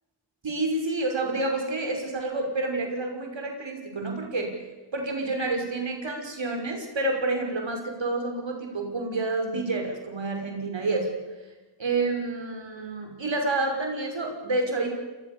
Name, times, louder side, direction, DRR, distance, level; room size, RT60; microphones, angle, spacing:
voice 1, 0.4-4.5 4.9-11.1 11.8-14.9, right 2 dB, 85° right, 3 dB, 6.1 m, -29 dB
26.5 x 21.5 x 7.1 m, 1.2 s
wide cardioid pair, 60°, 44 cm